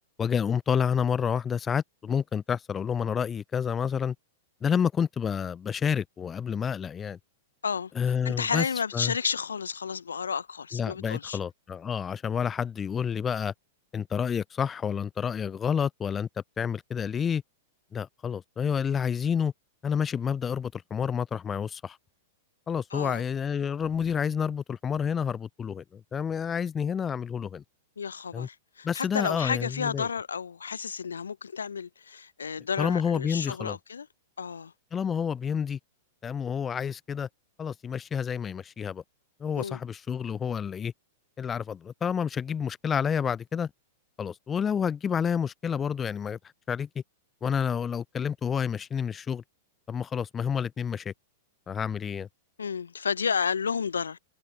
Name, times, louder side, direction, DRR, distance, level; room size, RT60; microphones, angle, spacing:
voice 1, 0.2-4.1 4.6-7.2 8.0-8.7 8.9-9.1 10.7-13.5 13.9-16.3 16.6-17.4 17.9-19.5 19.8-22.0 22.7-27.6 28.3-28.5 28.8-30.1 32.8-33.8 34.9-35.8 36.2-37.3 37.6-39.0 39.4-40.9 41.4-43.7 44.2-46.4 46.7-46.9 47.4-49.4 49.9-51.1 51.7-52.3, left 7 dB, 20° left, 0.4 m, -29 dB
voice 2, 8.2-11.4 22.9-23.2 28.0-34.1 34.4-34.7 39.6-39.8 52.6-54.2, left 6 dB, 75° left, 0.6 m, -31 dB
figure-of-eight pair, 100°, 0 cm